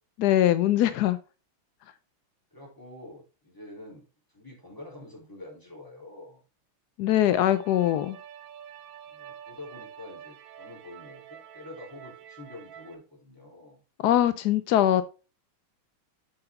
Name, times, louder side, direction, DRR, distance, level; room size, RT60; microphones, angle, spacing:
voice 1, 0.2-1.2 7.0-8.2 14.0-15.0, left 12 dB, 85° left, 0.8 m, -22 dB
voice 2, 2.5-4.1 4.3-6.4 9.1-13.8, left 2 dB, 10° left, 3.5 m, -46 dB
sound 1, 7.3-12.9, right 9 dB, 70° right, 1.6 m, -47 dB
7.9 x 5.6 x 3.5 m
omnidirectional pair, 2.3 m